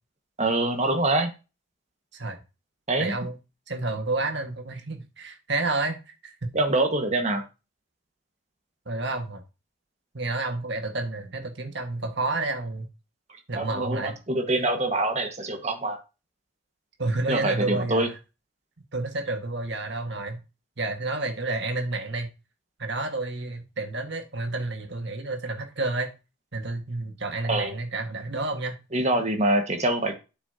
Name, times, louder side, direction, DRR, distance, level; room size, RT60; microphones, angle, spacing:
voice 1, 0.4-1.3 2.9-3.1 6.5-7.4 13.5-16.0 17.3-18.1 27.5-27.7 28.9-30.1, right 2 dB, 35° right, 5 dB, 1.6 m, -25 dB
voice 2, 3.0-3.4 3.7-6.0 6.2-6.5 8.9-9.4 10.1-12.9 13.5-14.2 17.0-18.2 18.9-20.4 20.8-22.3 22.8-26.1 26.5-28.8, right 2 dB, 55° right, 5 dB, 1.8 m, -30 dB
8.8 x 7.0 x 2.9 m, 0.28 s
head